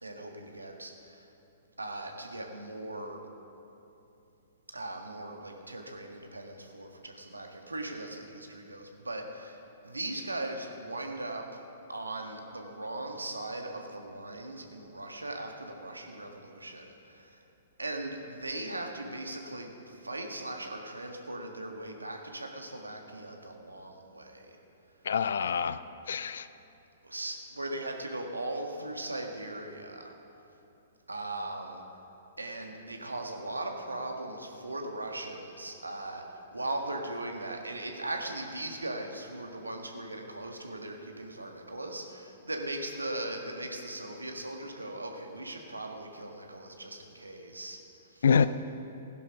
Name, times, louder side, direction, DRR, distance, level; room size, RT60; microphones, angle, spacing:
voice 1, 0.0-1.3 1.8-3.2 4.7-9.6 9.8-11.5 11.9-17.4 17.8-24.6 27.0-30.1 31.1-31.8 32.4-47.8 48.1-48.2, right 2 dB, 85° right, 3 dB, 1.6 m, -39 dB
voice 2, 25.0-25.8 26.1-26.5 48.2-48.5, left 6 dB, 65° left, 14 dB, 0.5 m, -25 dB
16.5 x 10.5 x 5.3 m, 2.8 s
figure-of-eight pair, 115°, 0 cm